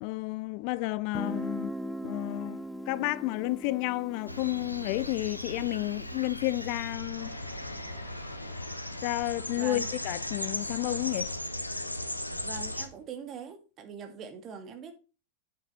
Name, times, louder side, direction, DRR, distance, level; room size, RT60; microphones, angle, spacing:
voice 1, 0.0-1.7 2.0-2.6 2.9-7.3 9.0-11.3, left 19 dB, 45° left, 0.4 m, -31 dB
Guitar, 1.1-6.7, right 1 dB, ahead, 0.6 m, -40 dB
sound 1, 4.3-12.9, left 1 dB, 85° left, 0.9 m, -37 dB
Motor vehicle (road) / Engine starting / Accelerating revving vroom, 7.2-13.0, left 1 dB, 90° right, 3.8 m, -49 dB
voice 2, 9.6-9.9 12.4-14.9, right 5 dB, 30° right, 2.0 m, -42 dB
8.8 x 7.4 x 3.7 m
figure-of-eight pair, 90°, 0 cm